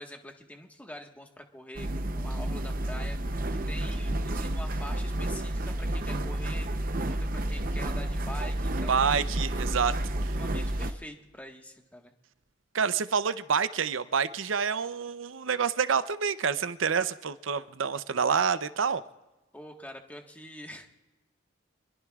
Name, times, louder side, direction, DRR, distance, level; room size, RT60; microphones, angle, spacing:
voice 1, 0.0-3.2 3.5-6.7 7.0-9.0 10.3-12.1 19.5-20.9, left 1 dB, 10° left, 2 dB, 1.5 m, -45 dB
sound 1, 1.8-10.9, right 1 dB, 45° right, 0.7 m, -30 dB
voice 2, 8.9-9.9 10.2-10.4 12.7-19.0, right 6 dB, 90° right, 13 dB, 0.7 m, -27 dB
26.5 x 22.0 x 2.4 m, 1.1 s
head